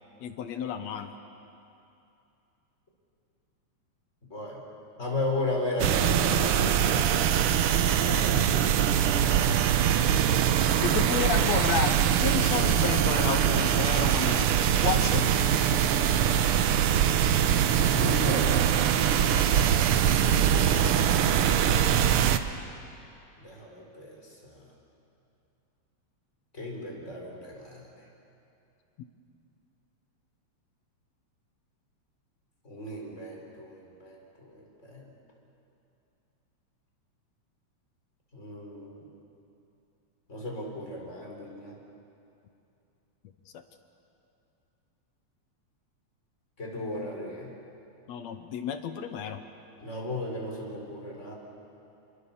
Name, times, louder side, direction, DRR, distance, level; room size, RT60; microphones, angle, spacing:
voice 1, 0.2-1.1 8.1-8.6 10.8-15.5 19.3-19.5 48.1-49.4, left 8 dB, 70° left, 8 dB, 2.1 m, -32 dB
voice 2, 4.3-4.7 5.0-7.4 7.8-9.1 17.9-18.7 20.9-21.7 23.4-24.7 26.5-27.9 32.6-35.1 38.3-39.1 40.3-41.8 46.6-47.6 49.8-51.3, left 1 dB, 25° left, -1 dB, 4.7 m, -36 dB
sound 1, 5.8-22.4, right 9 dB, 70° right, 1.4 m, -23 dB
27.5 x 23.5 x 7.2 m, 2.7 s
omnidirectional pair, 3.3 m